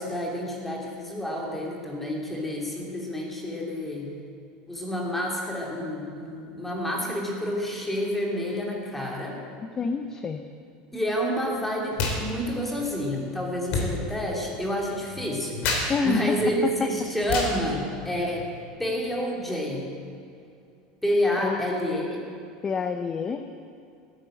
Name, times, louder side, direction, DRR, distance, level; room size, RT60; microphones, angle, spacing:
voice 1, 0.0-4.1 4.7-9.4 10.9-18.5 18.8-19.9 21.0-22.2, equal, 5° left, -2 dB, 2.7 m, -29 dB
voice 2, 9.8-10.5 15.9-16.9 21.4-21.6 22.6-23.5, left 5 dB, 20° left, 8 dB, 0.6 m, -27 dB
sound 1, 11.9-12.2 12.5-18.6, left 3 dB, 55° left, 3.2 m, -32 dB
15.5 x 9.0 x 7.8 m, 2.5 s
supercardioid pair, 150°, 3 cm